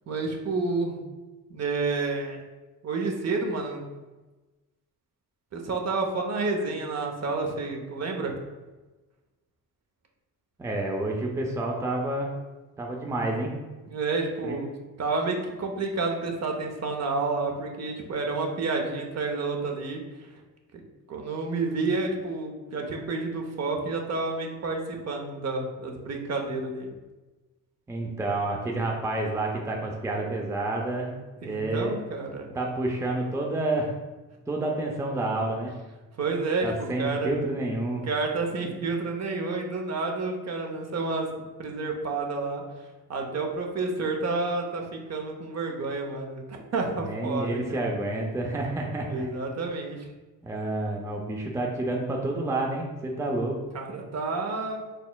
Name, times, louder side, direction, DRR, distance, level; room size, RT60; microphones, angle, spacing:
voice 1, 0.1-1.0 1.5-2.4 2.8-3.8 5.5-8.3 13.9-14.7 15.0-20.0 20.7-20.8 21.1-26.9 31.4-32.6 36.2-37.3 38.0-41.3 41.6-42.6 43.1-47.9 49.1-50.1 53.7-54.8, right 3 dB, 45° right, 2 dB, 0.7 m, -30 dB
voice 2, 10.6-12.3 12.8-13.6 14.4-14.6 27.9-31.1 31.4-31.9 32.5-33.9 34.5-35.7 36.6-38.1 46.9-49.3 50.4-53.6, right 2 dB, 10° right, 0 dB, 0.5 m, -29 dB
4.1 x 3.4 x 2.2 m, 1.2 s
cardioid pair, 85°, 36 cm